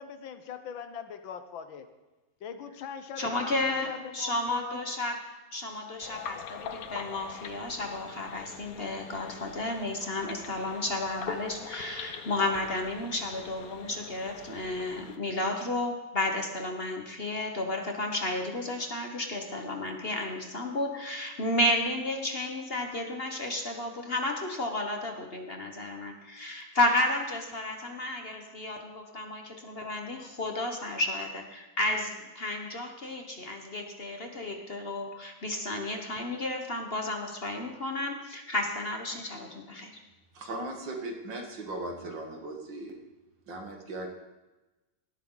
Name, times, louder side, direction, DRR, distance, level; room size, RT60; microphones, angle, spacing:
voice 1, 0.0-1.9 2.4-4.8, left 7 dB, 75° left, 9 dB, 1.7 m, -41 dB
voice 2, 3.2-5.2 5.5-39.9, left 1 dB, 35° left, 3 dB, 1.4 m, -32 dB
sound 1, 6.0-15.2, left 7 dB, 55° left, 1.1 m, -43 dB
voice 3, 40.3-43.0 43.5-44.1, right 2 dB, 65° right, 2 dB, 2.6 m, -38 dB
18.0 x 13.0 x 4.0 m, 1.1 s
omnidirectional pair, 2.2 m